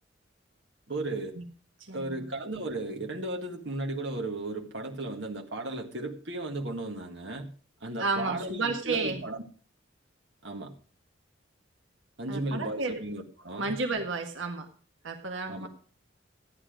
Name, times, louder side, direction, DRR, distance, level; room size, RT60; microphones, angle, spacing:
voice 1, 0.9-1.4 1.9-7.5 7.8-9.4 10.4-10.7 12.2-13.7 15.5-15.7, right 2 dB, 60° right, 1.9 m, -35 dB
voice 2, 1.8-2.2 8.0-9.2 12.3-13.0 13.6-14.7 15.0-15.7, right 3 dB, 75° right, 1.7 m, -32 dB
14.0 x 9.9 x 5.1 m
head